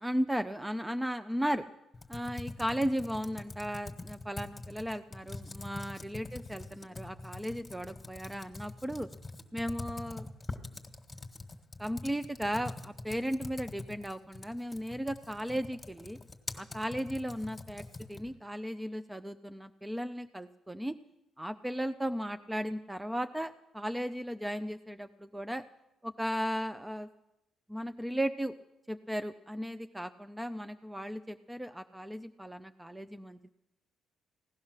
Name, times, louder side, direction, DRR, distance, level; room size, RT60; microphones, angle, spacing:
voice 1, 0.0-1.7 2.1-9.1 9.5-10.3 11.8-16.2 16.6-17.8 18.1-20.9 21.4-25.6 26.0-27.1 27.7-28.5 28.9-33.5, equal, 10° right, 9 dB, 0.5 m, -36 dB
Computer keyboard, 1.9-18.4, left 3 dB, 15° left, 1.6 m, -44 dB
16.5 x 11.0 x 6.5 m, 0.95 s
cardioid pair, 90°, 0 cm